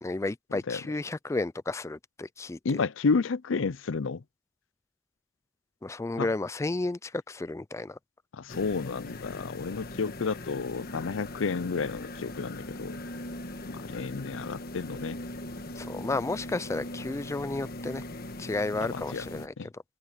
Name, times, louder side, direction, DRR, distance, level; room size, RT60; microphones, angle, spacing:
voice 1, 0.0-2.8 5.8-8.0 15.8-18.0 18.4-19.8, left 2 dB, 15° left, 0.3 m, -32 dB
voice 2, 2.6-4.2 6.2-6.3 8.3-13.0 13.7-15.2 18.8-19.3 19.6-19.7, left 4 dB, 85° left, 0.6 m, -31 dB
sound 1, 8.5-19.5, left 1 dB, 50° left, 1.4 m, -40 dB
open air
head